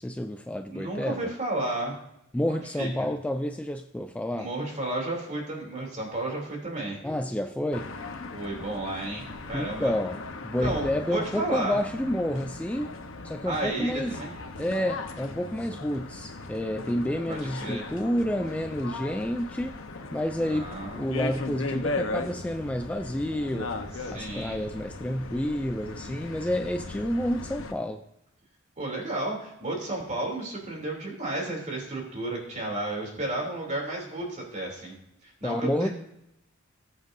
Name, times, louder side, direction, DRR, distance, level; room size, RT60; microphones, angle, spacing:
voice 1, 0.0-1.3 2.3-4.5 7.0-7.9 9.5-12.9 13.2-14.2 14.6-19.8 20.1-23.8 24.1-28.0 35.4-35.9, left 1 dB, 5° left, 6 dB, 0.3 m, -29 dB
voice 2, 0.7-2.0 2.5-2.9 4.3-7.0 8.3-9.9 10.6-11.8 13.4-14.3 17.3-17.9 20.4-21.0 23.9-24.6 28.8-35.0 35.2-35.9, right 2 dB, 35° right, -1 dB, 3.1 m, -32 dB
sound 1, 7.7-27.7, left 3 dB, 75° left, 1.0 m, -38 dB
19.5 x 7.9 x 2.7 m, 0.83 s
head